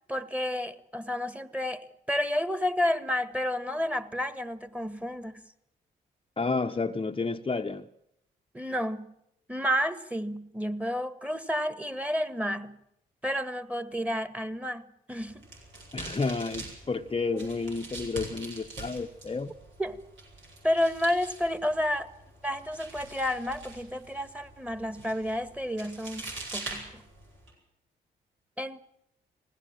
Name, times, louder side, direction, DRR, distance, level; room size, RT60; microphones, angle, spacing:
voice 1, 0.1-5.4 8.5-9.1 9.5-12.8 13.2-15.5 17.3-17.5 19.8-20.0 20.6-22.1 22.4-27.0 28.6-28.8, left 1 dB, 5° right, 12 dB, 1.8 m, -31 dB
voice 2, 6.4-7.8 15.9-19.5, left 4 dB, 25° left, 6 dB, 0.9 m, -31 dB
sound 1, 15.2-27.5, right 2 dB, 70° right, 7.5 m, -44 dB
21.0 x 16.5 x 8.9 m, 0.80 s
supercardioid pair, 50°, 21 cm